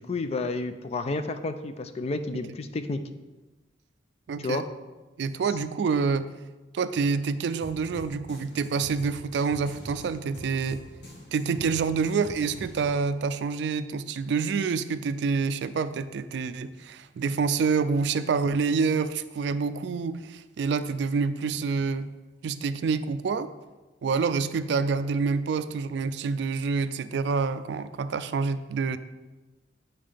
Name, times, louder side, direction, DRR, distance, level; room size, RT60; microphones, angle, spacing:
voice 1, 0.0-3.0 4.4-4.6, left 3 dB, 35° left, 9 dB, 0.4 m, -31 dB
voice 2, 4.3-4.6 5.2-6.3 6.7-10.9 11.3-22.1 22.4-23.5 24.0-29.0, right 5 dB, 70° right, 13 dB, 0.3 m, -27 dB
sound 1, 7.6-13.1, equal, 70° left, 2.1 m, -45 dB
7.2 x 5.5 x 3.4 m, 1.2 s
head